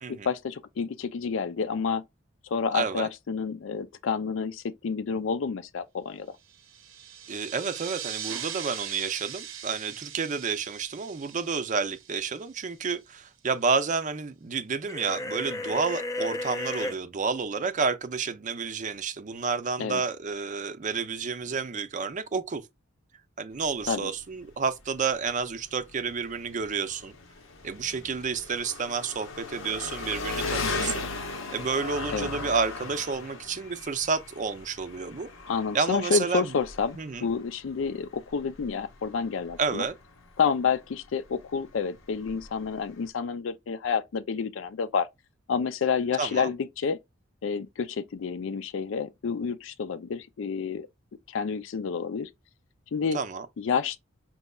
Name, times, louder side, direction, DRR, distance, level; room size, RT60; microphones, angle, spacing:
voice 1, 0.1-2.0 2.5-6.4 19.8-20.0 23.9-24.1 30.6-31.1 32.1-32.3 35.5-39.9 40.4-45.1 45.5-47.0 47.4-50.9 51.3-52.3 52.9-53.2 53.6-54.0, left 6 dB, 70° left, 0.4 m, -29 dB
voice 2, 2.7-3.1 7.3-22.6 23.4-27.2 27.6-31.1 31.5-35.3 35.7-36.5 37.0-37.3 39.6-39.9 46.2-46.5 53.1-53.5, right 5 dB, 40° right, 0.5 m, -30 dB
sound 1, 6.5-12.7, right 9 dB, 80° right, 0.7 m, -40 dB
sound 2, 14.9-17.0, left 1 dB, 15° left, 0.5 m, -33 dB
Engine, 23.5-43.1, left 3 dB, 90° left, 0.9 m, -38 dB
5.3 x 2.9 x 2.3 m
head